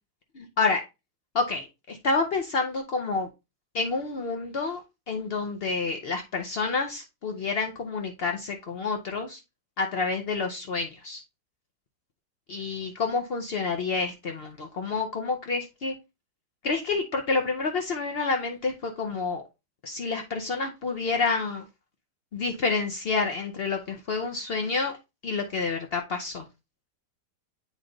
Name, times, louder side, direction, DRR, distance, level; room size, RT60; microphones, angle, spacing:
voice 1, 0.3-0.8 1.3-3.3 3.7-9.4 9.8-11.2 12.5-15.9 16.6-19.4 19.8-21.6 22.3-25.0 25.2-26.5, left 4 dB, 85° left, 3 dB, 0.5 m, -29 dB
8.2 x 3.1 x 3.8 m, 0.25 s
omnidirectional pair, 1.9 m